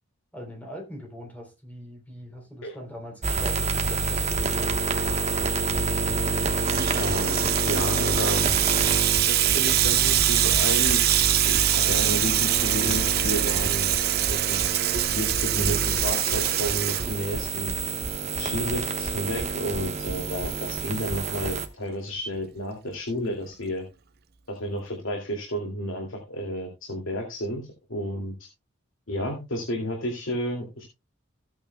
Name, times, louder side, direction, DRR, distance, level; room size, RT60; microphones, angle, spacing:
voice 1, 0.3-4.7, equal, 10° left, 3.4 m, -41 dB
sound 1, 3.2-21.7, right 3 dB, 35° right, 1.2 m, -28 dB
Water tap faucet / Sink (filling or washing), 6.2-17.6, right 13 dB, 50° right, 0.7 m, -24 dB
voice 2, 6.9-8.4 9.3-11.1 11.4-13.9 14.2-14.6 15.1-17.8 18.4-23.8 24.5-27.6 27.9-28.3 29.1-30.8, equal, 80° left, 2.4 m, -31 dB
16.0 x 8.8 x 2.2 m
head